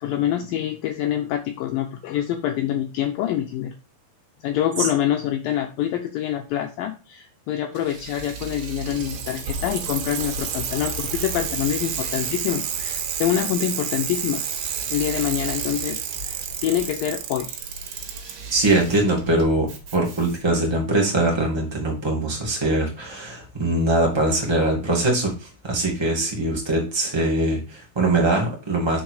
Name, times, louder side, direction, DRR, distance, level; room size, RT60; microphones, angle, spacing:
voice 1, 0.0-3.7 4.4-14.4 14.9-17.6, left 11 dB, 90° left, 5 dB, 2.0 m, -26 dB
Engine / Mechanisms, 7.7-20.6, right 5 dB, 60° right, 2.9 m, -40 dB
Bicycle, 8.7-18.3 19.4-19.5, right 7 dB, 80° right, 3.4 m, -30 dB
voice 2, 18.5-29.0, right 2 dB, 15° right, -1 dB, 0.8 m, -22 dB
6.2 x 4.6 x 6.4 m, 0.33 s
omnidirectional pair, 4.8 m